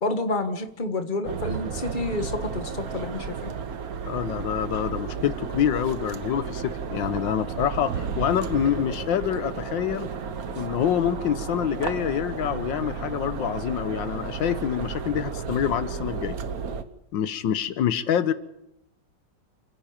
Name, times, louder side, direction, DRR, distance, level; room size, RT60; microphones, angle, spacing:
voice 1, 0.0-3.5, left 2 dB, 25° left, 7 dB, 1.6 m, -29 dB
sound 1, 1.2-16.8, right 6 dB, 55° right, 1.6 m, -33 dB
voice 2, 4.0-10.1 10.6-16.4 17.1-18.3, left 9 dB, 85° left, 13 dB, 1.7 m, -26 dB
29.0 x 11.0 x 8.8 m, 0.80 s
omnidirectional pair, 2.0 m